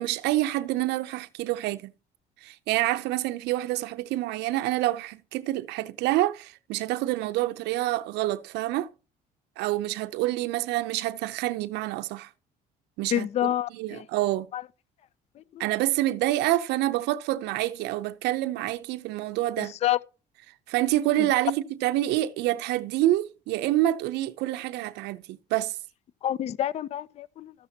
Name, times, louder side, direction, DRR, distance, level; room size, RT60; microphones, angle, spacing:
voice 1, 0.0-1.9 2.4-8.9 9.6-12.3 13.0-14.5 15.6-19.8 20.7-25.8, right 15 dB, 85° right, 0.5 m, -27 dB
voice 2, 13.1-14.0 14.5-14.6 19.6-20.0 26.2-27.5, left 12 dB, 40° left, 0.4 m, -28 dB
14.0 x 7.1 x 2.8 m
cardioid pair, 110°, 17 cm